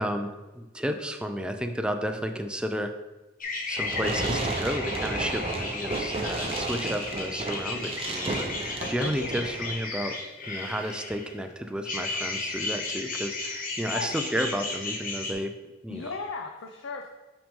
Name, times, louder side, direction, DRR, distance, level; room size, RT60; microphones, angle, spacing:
voice 1, 0.0-2.9 3.7-10.1 10.5-15.5 15.8-16.1, equal, 5° right, 6 dB, 0.4 m, -32 dB
sound 1, 3.4-11.4 11.8-15.3, left 3 dB, 45° left, 1.0 m, -34 dB
Fireworks, 3.8-9.8, right 2 dB, 30° right, 0.7 m, -33 dB
voice 2, 4.0-4.5 8.8-9.1 13.9-14.3 15.9-17.1, left 4 dB, 70° left, 3 dB, 0.5 m, -37 dB
5.8 x 5.3 x 3.6 m, 1.1 s
head